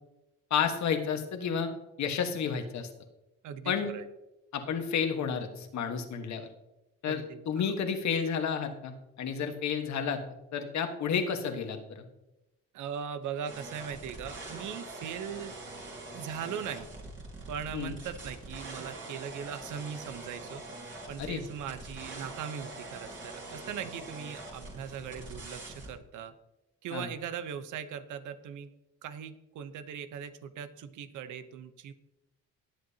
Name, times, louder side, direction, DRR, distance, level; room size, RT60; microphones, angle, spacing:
voice 1, 0.5-1.7 2.0-2.9 3.6-3.9 4.5-6.5 7.0-10.2 10.5-12.0 17.7-17.9 21.2-21.4 26.9-27.1, left 7 dB, 65° left, 6 dB, 1.5 m, -31 dB
voice 2, 3.4-4.1 7.1-7.8 12.7-15.5 16.1-16.9 17.5-20.6 21.1-26.3 26.8-28.7 29.0-31.9, right 8 dB, 80° right, 11 dB, 0.9 m, -40 dB
sound 1, 13.4-25.9, right 2 dB, 40° right, 4.0 m, -44 dB
18.0 x 7.8 x 2.8 m, 0.95 s
cardioid pair, 90°, 30 cm